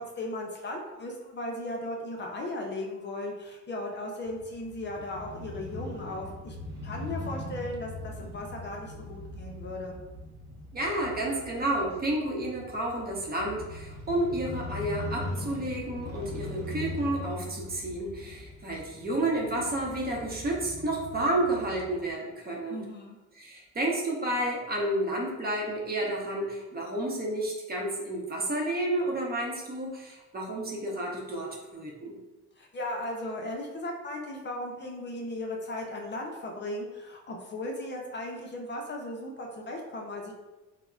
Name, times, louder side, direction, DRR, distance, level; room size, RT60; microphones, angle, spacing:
voice 1, 0.0-6.6 6.8-10.0 22.7-23.2 32.6-40.3, left 1 dB, 35° left, 0 dB, 0.5 m, -36 dB
Crow / Motorcycle, 4.2-22.1, left 1 dB, 65° right, 0.9 m, -41 dB
voice 2, 10.7-22.8 23.4-32.2, right 1 dB, 30° right, -2 dB, 0.7 m, -31 dB
3.6 x 2.0 x 2.3 m, 1.1 s
cardioid pair, 90°, 30 cm